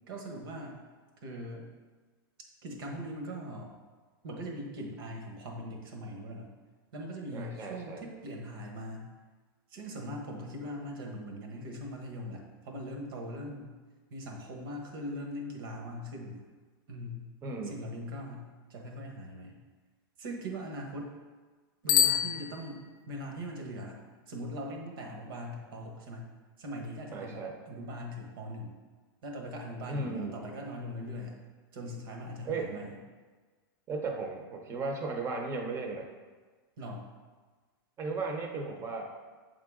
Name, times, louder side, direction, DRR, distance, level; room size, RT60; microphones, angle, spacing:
voice 1, 0.1-0.8 1.2-1.7 2.6-3.7 4.2-6.5 6.9-9.1 9.7-13.7 14.1-16.4 16.9-17.3 17.6-18.4 18.7-19.6 20.2-21.1 21.8-24.0 24.3-26.3 26.6-28.8 29.2-31.3 31.7-32.9 36.8-37.1, equal, 75° right, 1 dB, 1.3 m, -41 dB
voice 2, 7.3-8.0 17.4-17.8 27.1-27.5 29.9-30.4 32.4-32.7 33.9-36.1 38.0-39.1, right 3 dB, 20° right, 3 dB, 0.8 m, -35 dB
Bicycle bell, 21.8-23.2, left 9 dB, 60° left, 0.5 m, -28 dB
7.6 x 3.9 x 3.7 m, 1.4 s
supercardioid pair, 155°, 12 cm